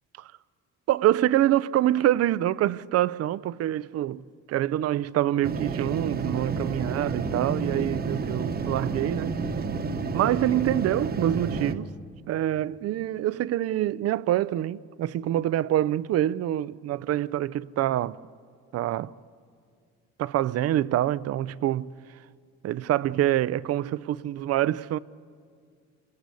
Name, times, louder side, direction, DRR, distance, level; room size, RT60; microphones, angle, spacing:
voice 1, 0.9-9.4 10.1-11.9 12.3-18.2 18.7-19.1 20.2-21.9 22.6-25.0, right 13 dB, 55° right, 0.6 m, -26 dB
sound 1, 5.4-11.7, right 4 dB, 30° right, 1.1 m, -30 dB
26.5 x 21.0 x 8.3 m
cardioid pair, 125°, 29 cm